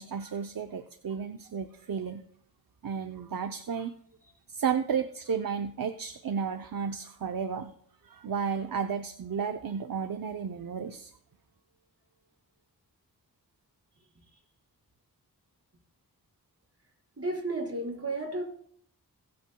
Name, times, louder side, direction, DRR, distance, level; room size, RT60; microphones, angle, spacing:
voice 1, 0.0-2.2 2.8-3.9 4.5-7.7 8.0-11.1, right 6 dB, 65° right, 8 dB, 0.7 m, -33 dB
voice 2, 17.2-18.4, right 2 dB, 40° right, -2 dB, 5.0 m, -32 dB
23.0 x 8.6 x 2.3 m, 0.65 s
cardioid pair, 45°, 37 cm